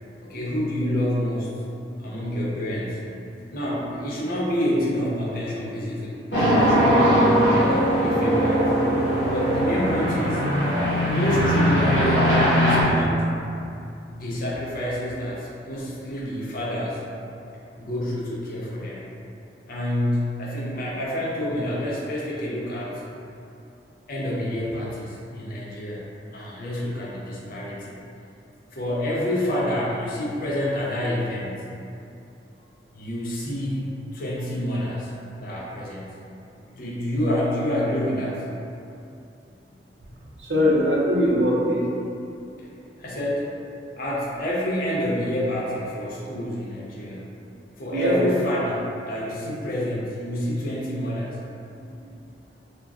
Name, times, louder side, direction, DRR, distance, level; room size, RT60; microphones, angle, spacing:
voice 1, 0.2-1.6 2.0-3.1 3.5-7.4 8.0-8.6 9.3-10.4 11.1-13.5 14.1-17.0 17.8-19.1 19.7-23.0 24.1-28.0 28.7-31.8 32.9-36.3 36.7-38.5 43.0-43.5 44.0-47.4 47.8-51.4, left 1 dB, 55° left, -5 dB, 0.5 m, -28 dB
sound 1, 6.3-12.8, equal, 85° left, 0.8 m, -20 dB
voice 2, 40.4-41.9 42.6-42.7 47.9-48.2 52.0-52.1, equal, 75° right, -5 dB, 0.6 m, -21 dB
2.3 x 2.2 x 3.4 m, 2.6 s
head